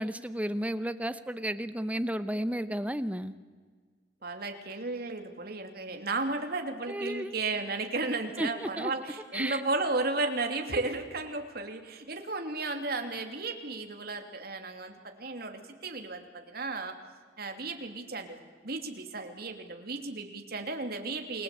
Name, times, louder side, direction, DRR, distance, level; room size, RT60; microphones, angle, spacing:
voice 1, 0.0-3.3 6.9-7.4 8.4-8.9 9.3-9.6, equal, 10° right, 12 dB, 0.8 m, -33 dB
voice 2, 4.2-16.9 17.4-18.4 18.6-21.4, right 3 dB, 55° right, 5 dB, 2.9 m, -34 dB
28.5 x 21.0 x 8.5 m, 1.5 s
head